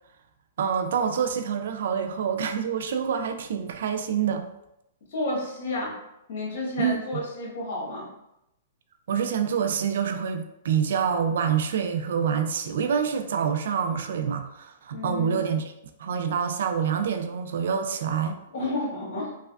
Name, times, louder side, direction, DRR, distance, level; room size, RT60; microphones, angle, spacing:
voice 1, 0.6-4.5 6.8-7.0 9.1-15.7 16.0-18.4, right 7 dB, 70° right, 7 dB, 0.3 m, -26 dB
voice 2, 5.1-5.9 6.3-8.1 14.9-15.4 18.5-19.3, left 2 dB, 60° left, -3 dB, 1.3 m, -31 dB
3.3 x 2.1 x 2.3 m, 0.84 s
hypercardioid pair, 135°, 0 cm